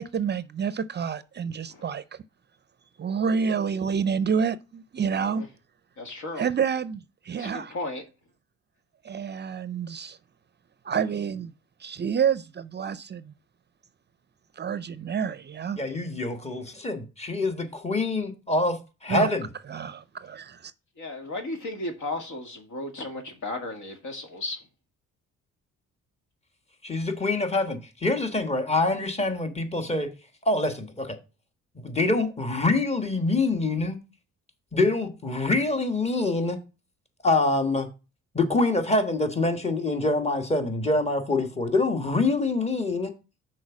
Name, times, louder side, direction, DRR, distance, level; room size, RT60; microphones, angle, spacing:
voice 1, 0.0-2.0 3.0-5.4 6.4-7.7 9.0-10.2 10.8-11.5 11.8-13.3 14.6-15.8 19.1-19.3 19.7-20.7, right 7 dB, 35° right, 0.5 m, -28 dB
voice 2, 5.0-5.5 6.0-6.4 7.4-8.0 21.0-24.7, left 2 dB, 75° left, 2.0 m, -35 dB
voice 3, 15.8-19.5 26.8-30.1 30.4-31.2 31.7-34.0 34.7-36.6 37.2-37.9 38.3-43.1, left 2 dB, 20° left, 1.4 m, -25 dB
6.3 x 4.4 x 6.0 m
cardioid pair, 90°, 30 cm